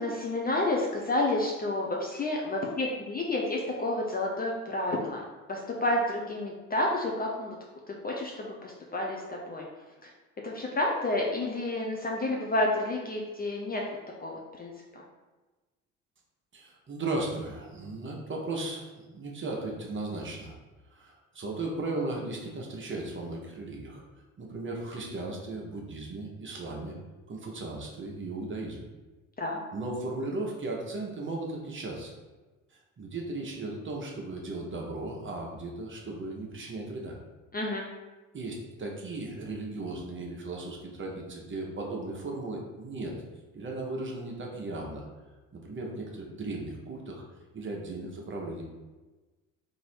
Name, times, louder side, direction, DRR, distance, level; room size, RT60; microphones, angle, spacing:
voice 1, 0.0-5.2 5.5-7.6 7.9-9.7 10.0-10.1 10.4-13.8 14.2-15.0 29.4-29.6 37.5-37.9, left 2 dB, 20° left, -1 dB, 0.6 m, -30 dB
voice 2, 16.5-20.6 20.9-24.0 24.4-26.9 27.3-28.8 29.7-32.1 33.0-37.2 38.3-43.2 43.5-45.0 45.5-47.2 47.5-48.6, right 2 dB, 30° right, 0 dB, 0.9 m, -36 dB
3.1 x 2.7 x 4.3 m, 1.2 s
figure-of-eight pair, 55°, 41 cm